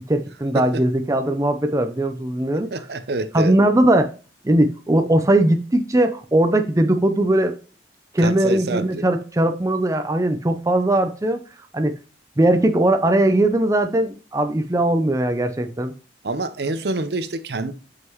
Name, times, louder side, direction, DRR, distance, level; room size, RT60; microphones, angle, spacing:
voice 1, 0.1-2.7 3.3-4.1 4.4-7.5 8.1-11.4 11.7-11.9 12.4-15.9, right 1 dB, 15° right, 0.5 m, -19 dB
voice 2, 2.5-3.6 8.2-9.1 16.2-17.7, right 2 dB, 60° right, 0.6 m, -27 dB
6.3 x 5.5 x 3.0 m
head